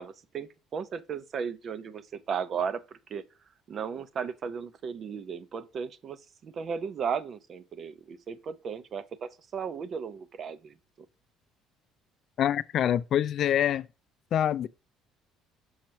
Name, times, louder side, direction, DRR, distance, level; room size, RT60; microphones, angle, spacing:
voice 1, 0.0-3.2 3.7-10.8, right 6 dB, 45° right, 0.7 m, -35 dB
voice 2, 12.4-13.8 14.3-14.7, left 10 dB, 55° left, 0.4 m, -25 dB
6.4 x 3.0 x 5.7 m
cardioid pair, 115°, 0 cm